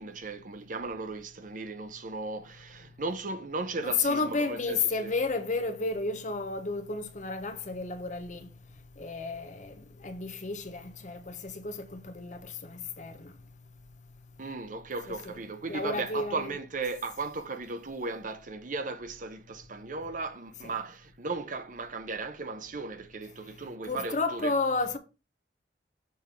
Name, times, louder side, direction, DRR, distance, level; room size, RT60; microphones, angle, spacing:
voice 1, 0.0-4.8 5.0-5.1 14.4-24.5, right 3 dB, 50° right, 0.9 m, -36 dB
voice 2, 3.8-8.5 9.0-13.3 15.2-15.4 15.7-16.5 20.6-20.7 23.8-25.0, left 3 dB, 45° left, 1.0 m, -32 dB
7.2 x 3.4 x 5.9 m
head